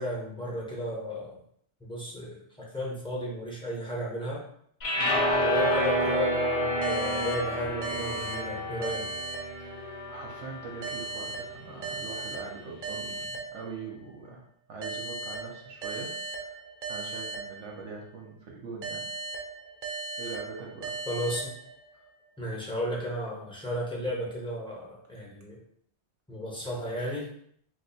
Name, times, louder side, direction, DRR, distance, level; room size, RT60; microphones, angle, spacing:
voice 1, 0.0-1.4 1.8-4.5 5.4-9.2 21.1-21.5 22.4-25.6 26.3-27.3, equal, 5° left, -4 dB, 0.7 m, -34 dB
sound 1, 4.8-11.1, equal, 55° left, 0.4 m, -29 dB
sound 2, 6.8-10.1 10.8-14.1 14.8-18.1 18.8-22.1, right 3 dB, 50° right, 0.8 m, -38 dB
voice 2, 9.6-16.6 16.8-19.0 20.2-21.0, right 4 dB, 80° right, -1 dB, 0.9 m, -42 dB
2.6 x 2.2 x 4.0 m, 0.65 s
omnidirectional pair, 1.2 m